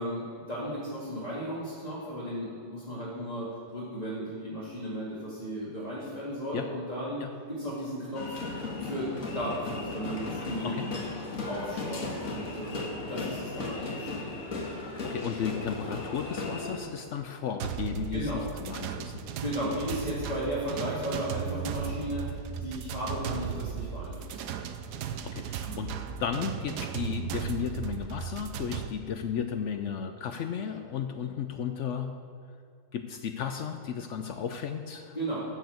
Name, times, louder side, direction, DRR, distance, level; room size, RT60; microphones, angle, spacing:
voice 1, 0.0-7.2 7.5-8.4 8.8-11.0 11.5-14.2 18.1-18.4 19.3-24.4 25.6-25.8 35.1-35.4, equal, 25° left, -8 dB, 2.2 m, -35 dB
sound 1, 8.1-16.8, left 3 dB, 55° left, 1.9 m, -36 dB
voice 2, 14.9-19.2 25.2-25.9 26.2-32.1 32.9-35.2, left 7 dB, 75° left, 7 dB, 0.6 m, -34 dB
sound 2, 17.6-28.9, right 8 dB, 75° right, 1.2 m, -36 dB
12.5 x 4.8 x 7.8 m, 2.3 s
omnidirectional pair, 1.8 m